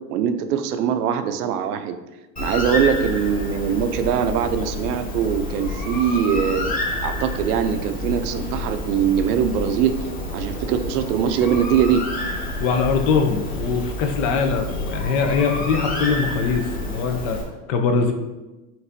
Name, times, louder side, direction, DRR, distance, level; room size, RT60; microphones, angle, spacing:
voice 1, 0.1-2.0 2.4-10.0 10.3-12.0, right 8 dB, 80° right, 9 dB, 0.6 m, -22 dB
Bird, 2.4-17.4, left 2 dB, 20° left, 1.0 m, -29 dB
voice 2, 12.6-17.4 17.7-18.1, left 5 dB, 55° left, 5 dB, 0.7 m, -22 dB
5.8 x 2.6 x 2.7 m, 1.1 s
hypercardioid pair, 110°, 45 cm